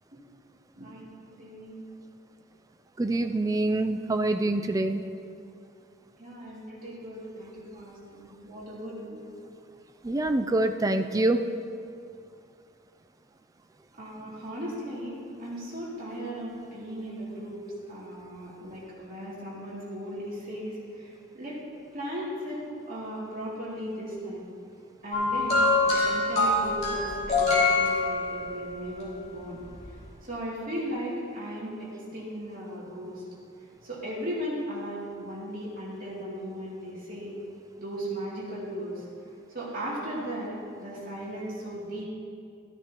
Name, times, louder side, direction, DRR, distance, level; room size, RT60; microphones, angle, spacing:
voice 1, 0.8-1.8 6.2-9.2 14.0-17.6 17.9-21.6 21.9-24.5 25.0-29.6 30.2-33.2 33.8-37.4 37.8-39.0 39.5-42.1, equal, 40° right, -7 dB, 2.8 m, -37 dB
voice 2, 3.0-5.0 10.0-11.4, right 2 dB, 15° right, 7 dB, 0.3 m, -25 dB
sound 1, 25.1-28.7 29.7-29.9, left 3 dB, 30° left, 2.7 m, -24 dB
13.5 x 9.8 x 3.0 m, 2.4 s
head